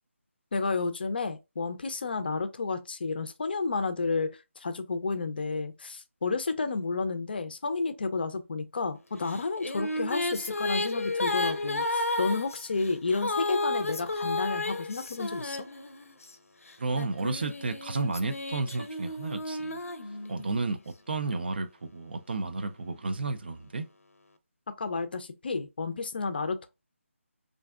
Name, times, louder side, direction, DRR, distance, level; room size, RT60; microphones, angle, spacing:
voice 1, 0.5-15.6 24.8-26.7, left 4 dB, 45° left, 0.4 m, -31 dB
Female singing, 9.3-16.2 16.9-20.7, left 2 dB, 90° left, 0.6 m, -32 dB
voice 2, 16.8-19.8 20.3-20.8 21.1-23.9, right 3 dB, 45° right, 0.3 m, -32 dB
3.4 x 2.5 x 2.3 m
figure-of-eight pair, 165°, 7 cm